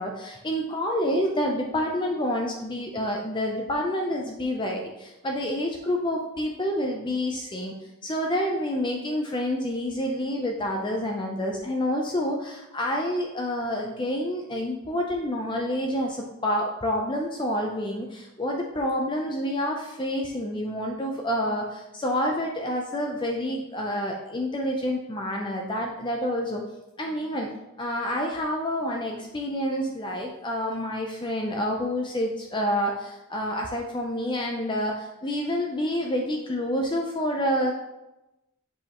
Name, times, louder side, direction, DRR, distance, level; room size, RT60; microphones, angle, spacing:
voice 1, 0.0-7.7 8.0-26.6 27.0-27.5 27.8-37.7, equal, 20° left, 1 dB, 0.6 m, -28 dB
7.2 x 4.9 x 3.0 m, 0.95 s
head